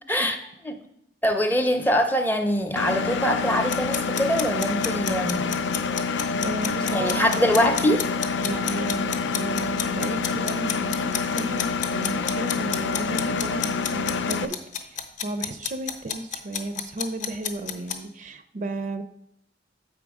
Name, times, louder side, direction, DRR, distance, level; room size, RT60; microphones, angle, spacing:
voice 1, 1.2-5.6 6.9-8.0, equal, 10° left, 6 dB, 0.5 m, -23 dB
Engine, 2.8-14.5, left 5 dB, 80° left, 0.4 m, -27 dB
sound 1, 3.7-18.0, left 8 dB, 45° left, 0.7 m, -30 dB
voice 2, 6.4-7.4 8.4-19.0, right 2 dB, 45° right, 9 dB, 0.4 m, -34 dB
sound 2, 6.9-8.3 12.0-12.2, right 4 dB, 85° right, 0.6 m, -39 dB
7.5 x 5.1 x 4.7 m, 0.76 s
head